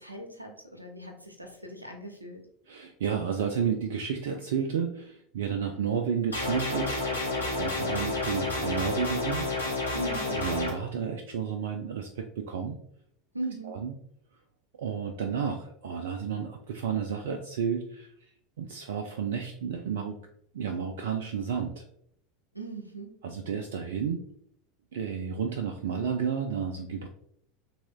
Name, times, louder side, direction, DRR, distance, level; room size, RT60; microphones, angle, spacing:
voice 1, 0.0-2.4 9.9-10.5 13.3-13.8 22.5-23.2, right 2 dB, 90° right, 3 dB, 0.8 m, -39 dB
voice 2, 2.7-9.5 10.0-12.8 13.7-13.9 14.8-18.1 18.6-20.2 20.5-21.8 23.2-24.3 24.9-27.1, right 7 dB, 65° right, 5 dB, 0.4 m, -32 dB
sound 1, 6.3-10.7, left 2 dB, 85° left, 1.4 m, -30 dB
6.0 x 3.5 x 2.3 m, 0.69 s
figure-of-eight pair, 80°, 0 cm